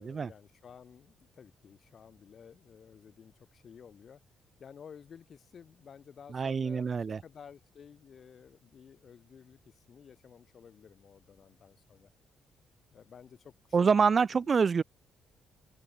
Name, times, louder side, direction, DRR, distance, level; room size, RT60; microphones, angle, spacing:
voice 1, 0.0-4.2 4.6-12.1 12.9-14.5, left 7 dB, 50° left, 4.2 m, -53 dB
voice 2, 6.3-7.2 13.7-14.8, right 5 dB, 40° right, 0.4 m, -26 dB
cardioid pair, 100°, 0 cm